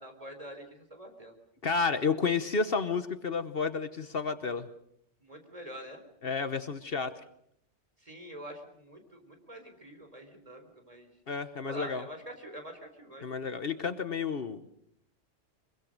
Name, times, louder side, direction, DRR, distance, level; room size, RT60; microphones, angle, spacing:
voice 1, 0.0-1.4 5.2-6.0 8.0-11.1 11.6-13.2, right 1 dB, 30° right, 5 dB, 4.1 m, -46 dB
voice 2, 1.6-4.7 6.2-7.1 11.3-12.0 13.2-14.7, left 5 dB, 60° left, 11 dB, 1.3 m, -31 dB
24.0 x 23.0 x 6.6 m, 0.72 s
omnidirectional pair, 1.2 m